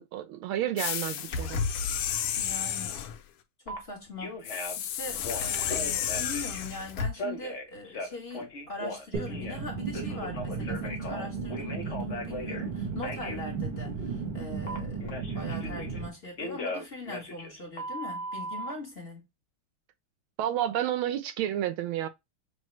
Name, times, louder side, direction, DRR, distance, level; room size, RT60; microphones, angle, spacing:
voice 1, 0.0-1.6 20.4-22.1, right 11 dB, 75° right, 1.4 m, -30 dB
sound 1, 0.8-3.2 4.4-7.1, left 8 dB, 90° left, 1.6 m, -31 dB
voice 2, 2.4-2.9 3.6-4.4 4.8-19.2, left 2 dB, 35° left, 1.2 m, -41 dB
Telephone, 3.7-3.8 4.2-4.8 5.2-6.6 7.1-9.6 9.9-12.7 13.0-13.4 14.7-16.0 16.4-18.7, left 1 dB, 50° left, 0.8 m, -37 dB
sound 2, 9.1-16.1, right 5 dB, 55° right, 0.6 m, -35 dB
6.2 x 2.2 x 3.1 m
omnidirectional pair, 2.4 m